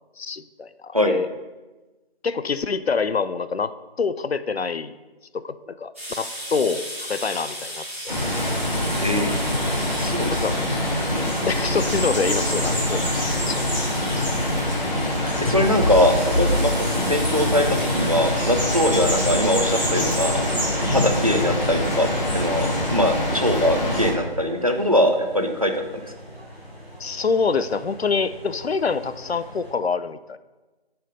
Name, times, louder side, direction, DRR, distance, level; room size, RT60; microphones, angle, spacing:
voice 1, 0.2-1.3 2.2-4.9 5.3-6.8 7.1-8.2 10.3-10.6 11.5-13.6 27.0-30.4, left 5 dB, 85° left, 14 dB, 0.6 m, -26 dB
sound 1, 5.9-20.3, equal, 15° right, 1.6 m, -36 dB
sound 2, 8.1-24.1, left 1 dB, 45° left, 2.6 m, -24 dB
voice 2, 9.0-9.4 9.9-10.4 14.3-14.4 14.8-20.4 20.8-22.1 22.3-25.7, left 1 dB, 35° right, 5 dB, 0.6 m, -22 dB
sound 3, 15.4-29.7, equal, 15° left, 3.0 m, -44 dB
6.8 x 5.6 x 5.2 m, 1.2 s
figure-of-eight pair, 170°, 31 cm